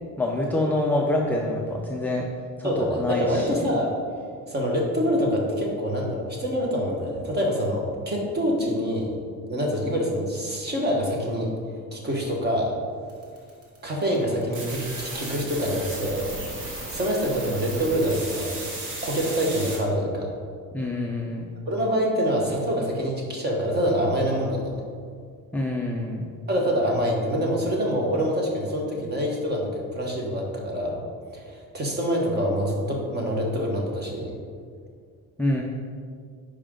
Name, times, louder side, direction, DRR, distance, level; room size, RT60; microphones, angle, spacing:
voice 1, 0.2-2.3 2.6-3.7 20.7-21.5 25.5-26.2 35.4-35.6, left 1 dB, 5° left, -1 dB, 0.3 m, -26 dB
voice 2, 2.6-4.0 4.5-9.1 9.5-11.5 11.9-12.8 13.8-16.3 16.9-18.6 19.0-20.3 21.7-24.8 26.5-31.0 31.3-34.4, equal, 25° right, -1 dB, 1.2 m, -25 dB
sound 1, 13.1-19.8, right 2 dB, 55° right, 1.7 m, -35 dB
10.5 x 5.0 x 3.7 m, 2.1 s
cardioid pair, 180°, 36 cm